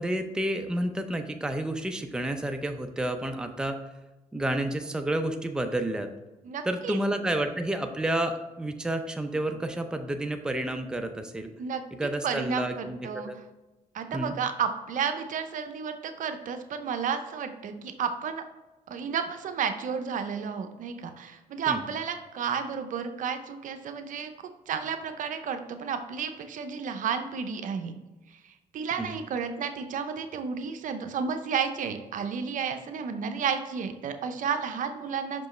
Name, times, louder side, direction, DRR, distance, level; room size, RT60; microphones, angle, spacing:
voice 1, 0.0-3.8 4.3-6.1 6.6-11.5 12.0-13.4 14.1-14.3 21.7-21.8 29.0-29.2, right 1 dB, 5° right, 5 dB, 0.6 m, -30 dB
voice 2, 6.4-7.0 11.6-13.3 13.9-18.4 18.9-24.3 24.7-27.9 28.4-35.5, right 6 dB, 65° right, 7 dB, 0.7 m, -32 dB
5.8 x 5.3 x 3.2 m, 1.1 s
cardioid pair, 95°, 14 cm